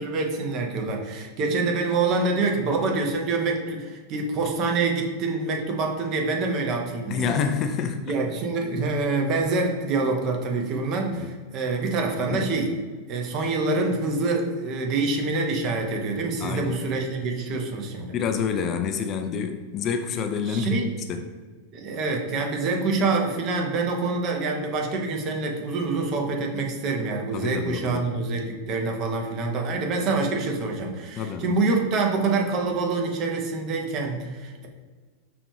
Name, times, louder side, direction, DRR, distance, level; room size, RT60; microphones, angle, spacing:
voice 1, 0.0-7.3 8.0-12.7 13.1-18.1 20.5-20.9 21.7-34.7, right 3 dB, 35° right, 2 dB, 0.7 m, -26 dB
voice 2, 7.1-8.1 11.1-11.3 12.3-12.5 16.4-16.8 18.1-21.2 27.3-28.3 31.2-31.5, left 6 dB, 35° left, 6 dB, 0.3 m, -28 dB
5.0 x 2.5 x 3.2 m, 1.4 s
figure-of-eight pair, 90°, 0 cm